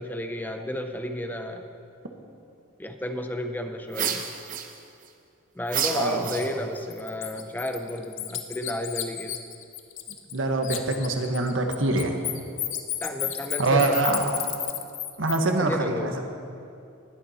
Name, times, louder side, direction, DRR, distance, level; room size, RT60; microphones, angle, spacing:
voice 1, 0.0-1.7 2.8-4.2 5.5-9.4 13.0-13.9 15.6-16.2, left 1 dB, 10° left, 6 dB, 0.7 m, -32 dB
sound 1, 3.9-5.1 5.7-6.8, right 8 dB, 40° right, 0.8 m, -30 dB
voice 2, 5.9-6.3 10.3-12.2 13.6-14.4 15.2-16.2, right 2 dB, 70° right, 4 dB, 1.3 m, -24 dB
Bird, 6.3-6.5 6.9-10.4 10.6-15.4, left 13 dB, 65° left, 0.8 m, -32 dB
19.5 x 8.5 x 4.3 m, 2.5 s
head